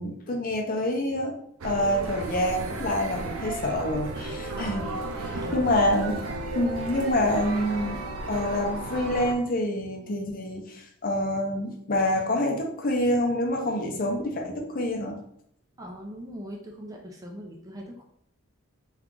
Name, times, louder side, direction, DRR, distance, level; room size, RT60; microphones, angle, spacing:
voice 1, 0.0-1.4 1.6-4.9 5.1-6.2 6.5-8.0 8.3-15.2, left 1 dB, 40° left, 1 dB, 0.5 m, -27 dB
sound 1, 1.6-9.4, right 2 dB, 85° right, 0.5 m, -34 dB
voice 2, 15.8-18.0, equal, 15° right, 1 dB, 0.4 m, -40 dB
2.9 x 2.3 x 3.7 m, 0.71 s
head